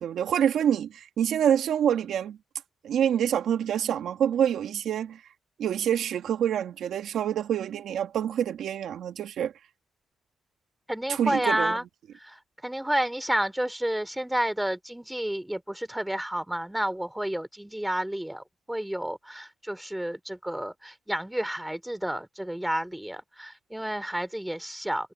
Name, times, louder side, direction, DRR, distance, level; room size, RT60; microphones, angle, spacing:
voice 1, 0.0-2.4 2.8-5.2 5.6-9.5 11.1-11.8, right 9 dB, 70° right, 1.5 m, -26 dB
voice 2, 10.9-11.8 12.2-25.1, right 1 dB, 5° right, 2.9 m, -30 dB
cardioid pair, 90°, 0 cm